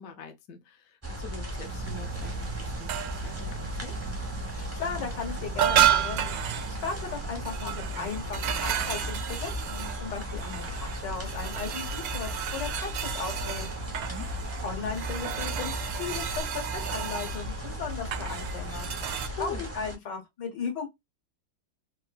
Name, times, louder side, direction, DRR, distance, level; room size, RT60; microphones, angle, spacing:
voice 1, 0.0-4.0 14.1-14.3 19.1-19.7, left 5 dB, 60° left, 1.0 m, -44 dB
sound 1, 1.0-19.9, equal, 15° right, 0.5 m, -36 dB
sound 2, 1.5-19.3, right 10 dB, 70° right, 1.0 m, -32 dB
voice 2, 4.5-6.4 6.8-13.7 14.6-18.9 19.4-20.9, left 6 dB, 80° left, 1.9 m, -36 dB
3.8 x 2.5 x 2.3 m
omnidirectional pair, 1.9 m